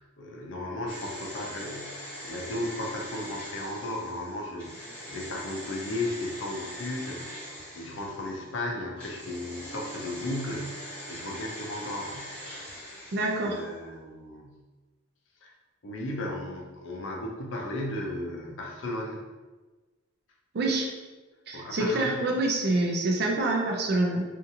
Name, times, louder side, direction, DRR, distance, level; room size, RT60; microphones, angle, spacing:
voice 1, 0.0-12.8 13.4-14.6 15.4-15.5 15.8-19.2 21.5-22.2, left 1 dB, 70° left, -1 dB, 0.5 m, -35 dB
sound 1, 0.9-8.4 9.0-13.7 13.9-14.0, equal, 5° left, 1.0 m, -42 dB
voice 2, 13.1-13.6 20.5-20.9 21.5-24.2, right 2 dB, 55° right, 0 dB, 0.5 m, -26 dB
2.7 x 2.4 x 2.6 m, 1.3 s
head